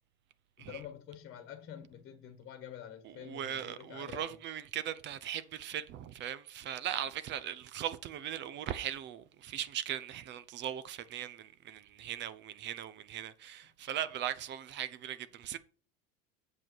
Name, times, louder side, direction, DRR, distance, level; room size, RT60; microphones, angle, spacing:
voice 1, 0.6-4.4, left 10 dB, 35° left, 1.4 m, -47 dB
voice 2, 3.0-15.6, right 10 dB, 40° right, 0.6 m, -39 dB
7.6 x 7.6 x 4.7 m
cardioid pair, 145°, 30 cm